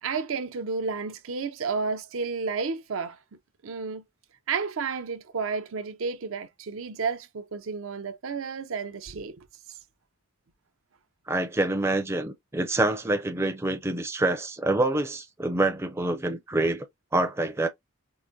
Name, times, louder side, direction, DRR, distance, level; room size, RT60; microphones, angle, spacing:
voice 1, 0.0-3.2 3.6-4.0 4.5-9.5, right 5 dB, 70° right, 0.5 m, -31 dB
voice 2, 11.3-16.9 17.1-17.7, right 2 dB, 10° right, 0.4 m, -26 dB
4.7 x 2.1 x 2.7 m
head